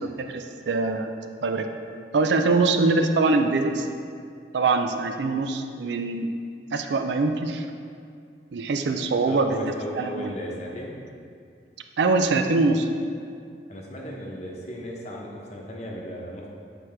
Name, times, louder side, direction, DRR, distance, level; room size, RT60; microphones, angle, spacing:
voice 1, 0.0-1.1 1.4-1.6 2.1-3.9 4.5-6.3 6.7-7.7 8.5-9.6 9.9-10.3 12.0-12.9, right 3 dB, 80° right, 6 dB, 0.4 m, -23 dB
voice 2, 9.2-11.0 13.7-16.5, equal, 40° left, -2 dB, 0.9 m, -35 dB
7.5 x 4.6 x 3.3 m, 2.3 s
head